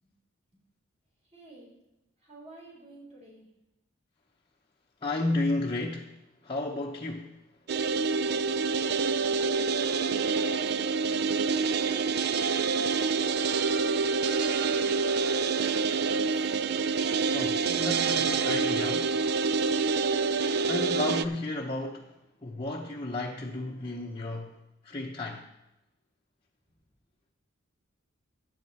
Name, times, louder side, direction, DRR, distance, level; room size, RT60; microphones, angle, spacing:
voice 1, 1.3-1.7 2.2-3.5 10.3-13.0 13.8-16.5, equal, 35° right, 4.1 m, -50 dB
voice 2, 5.0-6.1 6.4-7.4 17.3-19.2 19.5-19.6 20.7-22.1 22.4-24.6 24.8-25.4, left 2 dB, 25° left, 0.8 m, -33 dB
sound 1, 7.7-21.3, right 5 dB, 55° right, 0.4 m, -27 dB
12.0 x 8.5 x 4.2 m
head